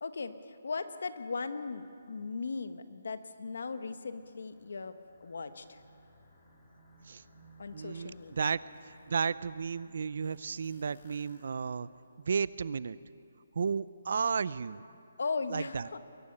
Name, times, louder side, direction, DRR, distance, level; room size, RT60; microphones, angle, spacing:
voice 1, 0.0-5.8 7.6-8.5 15.2-16.0, left 4 dB, 60° left, 10 dB, 1.3 m, -38 dB
sound 1, 3.4-12.0, right 1 dB, 20° left, 3.4 m, -61 dB
sound 2, 7.7-7.8 8.2-9.3 10.2-12.0, left 3 dB, 40° left, 2.9 m, -64 dB
voice 2, 7.7-8.6 9.1-11.9 12.3-13.0 13.6-14.8 15.5-15.9, right 6 dB, 45° right, 18 dB, 0.5 m, -33 dB
22.5 x 15.5 x 9.8 m, 2.5 s
hypercardioid pair, 180°, 0 cm